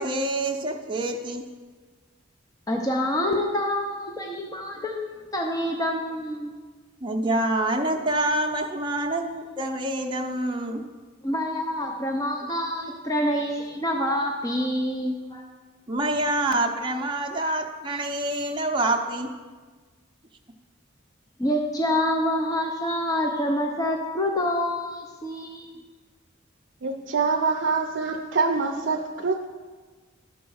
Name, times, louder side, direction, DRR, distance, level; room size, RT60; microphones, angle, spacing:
voice 1, 0.0-1.4 7.0-10.8 15.9-19.3, right 1 dB, 25° right, 1 dB, 0.6 m, -26 dB
voice 2, 2.7-6.5 11.2-15.4 21.4-25.7, left 1 dB, 15° left, 1 dB, 0.6 m, -27 dB
voice 3, 26.8-29.4, right 4 dB, 65° right, 1 dB, 0.5 m, -25 dB
11.5 x 4.4 x 6.3 m, 1.4 s
head